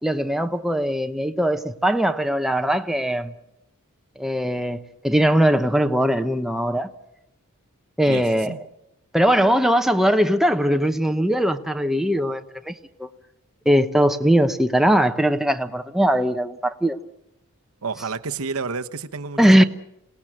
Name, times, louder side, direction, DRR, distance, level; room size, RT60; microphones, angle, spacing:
voice 1, 0.0-3.3 4.2-6.9 8.0-8.5 9.1-12.7 13.0-13.1 13.7-17.0 19.4-19.6, equal, ahead, 0.9 m, -20 dB
voice 2, 8.1-8.6 17.8-19.6, right 4 dB, 80° right, 1.0 m, -30 dB
27.0 x 18.0 x 7.6 m
head